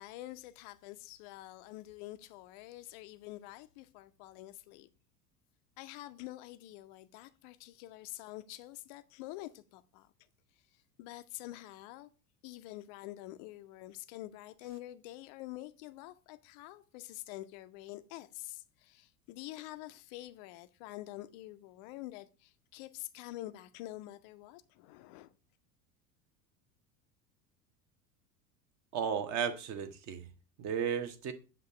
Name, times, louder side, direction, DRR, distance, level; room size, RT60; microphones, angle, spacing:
voice 1, 0.0-4.9 5.8-10.1 11.0-12.1 12.4-25.3, left 16 dB, 30° left, 0.3 m, -47 dB
voice 2, 28.9-30.3 30.6-31.3, right 7 dB, 35° right, 0.8 m, -34 dB
7.9 x 2.9 x 4.5 m
figure-of-eight pair, 75°, 48 cm